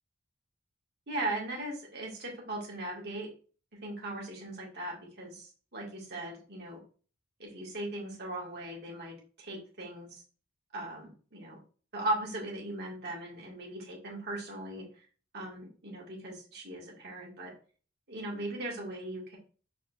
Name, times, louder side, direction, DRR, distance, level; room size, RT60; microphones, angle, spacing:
voice 1, 1.1-3.3 3.8-6.8 7.4-10.2 10.7-11.6 11.9-14.9 15.3-17.5 18.1-19.4, right 1 dB, 55° right, -2 dB, 1.7 m, -38 dB
4.8 x 4.2 x 2.4 m, 0.39 s
head